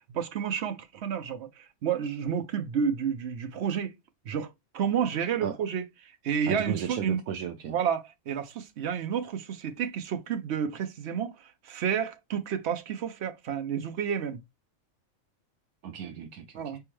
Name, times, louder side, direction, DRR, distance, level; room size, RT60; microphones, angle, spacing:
voice 1, 0.1-3.9 4.3-7.2 7.7-14.4 16.5-16.8, right 7 dB, 60° right, 0.8 m, -30 dB
voice 2, 5.2-5.6 6.5-7.8 15.8-16.8, right 8 dB, 85° right, 1.0 m, -35 dB
4.2 x 3.4 x 3.1 m
omnidirectional pair, 1.4 m